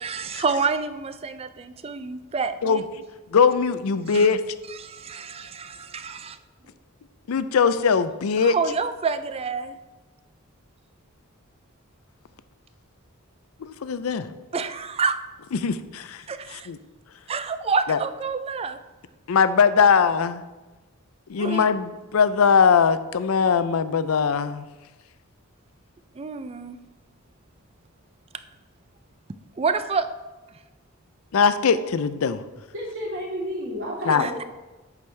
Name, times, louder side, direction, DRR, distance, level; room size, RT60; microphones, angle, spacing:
voice 1, 0.0-2.8 4.1-4.3 4.8-6.4 8.4-9.7 14.5-15.2 16.3-16.7 17.3-18.8 21.4-21.7 26.2-26.8 29.6-30.1 34.2-34.3, right 5 dB, 30° right, 11 dB, 0.4 m, -28 dB
voice 2, 2.6-3.0 3.3-4.4 7.3-8.6 13.6-14.3 15.5-16.2 16.5-16.8 17.9-18.0 19.3-20.4 21.3-24.6 31.3-32.4 34.1-34.3, left 6 dB, 80° left, 13 dB, 0.5 m, -21 dB
voice 3, 32.7-34.4, equal, 65° right, -6 dB, 2.7 m, -31 dB
8.4 x 6.2 x 3.3 m, 1.2 s
head